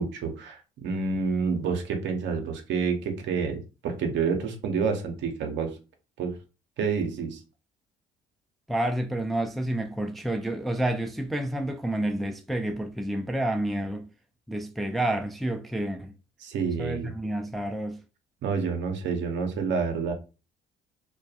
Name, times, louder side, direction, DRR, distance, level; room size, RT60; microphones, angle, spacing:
voice 1, 0.0-5.8 6.2-6.4 6.8-7.4 16.4-17.1 18.4-20.1, right 5 dB, 65° right, 0.7 m, -28 dB
voice 2, 8.7-14.1 14.5-16.1 16.8-18.0, right 1 dB, ahead, 0.4 m, -29 dB
2.2 x 2.2 x 2.7 m
hypercardioid pair, 55°, 20 cm